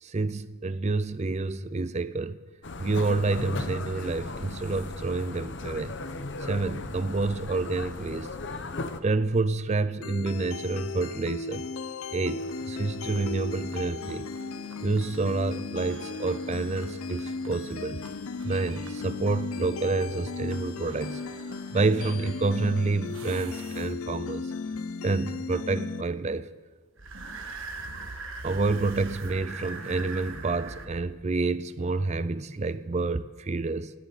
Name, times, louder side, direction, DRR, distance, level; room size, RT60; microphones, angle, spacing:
voice 1, 0.0-2.4 2.8-5.9 6.4-8.3 9.0-11.7 12.1-14.3 14.8-18.0 18.4-21.4 21.7-24.5 25.0-26.5 28.4-33.9, right 3 dB, 30° right, 0.4 m, -28 dB
sound 1, 2.6-9.0, left 2 dB, 55° left, 0.9 m, -36 dB
sound 2, 10.0-26.0, left 4 dB, 75° left, 0.6 m, -36 dB
sound 3, 12.4-24.3 27.0-30.9, right 3 dB, 65° right, 1.5 m, -44 dB
18.0 x 17.5 x 4.1 m
head